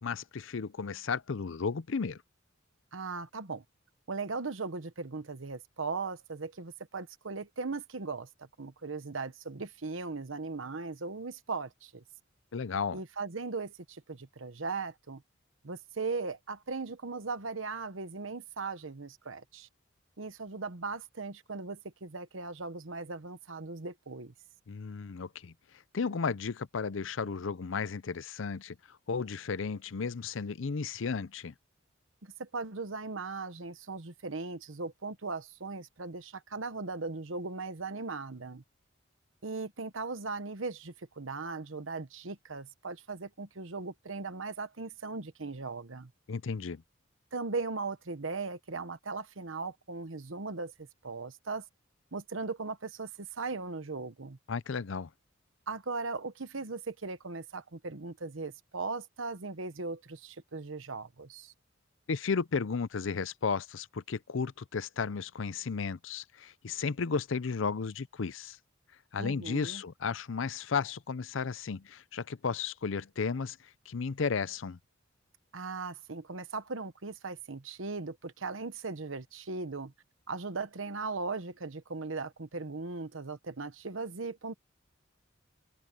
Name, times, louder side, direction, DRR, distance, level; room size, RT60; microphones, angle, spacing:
voice 1, 0.0-2.2 12.5-13.0 24.7-25.5 25.9-28.8 29.1-31.5 46.3-46.8 54.5-55.1 62.1-68.6 69.1-73.6 73.9-74.8, left 5 dB, 70° left, 0.6 m, -34 dB
voice 2, 2.9-3.6 4.1-12.0 12.9-15.2 15.6-19.7 20.2-24.3 32.2-38.6 39.4-46.1 47.3-51.6 52.1-54.4 55.7-61.5 69.2-69.8 75.5-79.9 80.3-84.5, right 3 dB, 75° right, 1.1 m, -38 dB
open air
head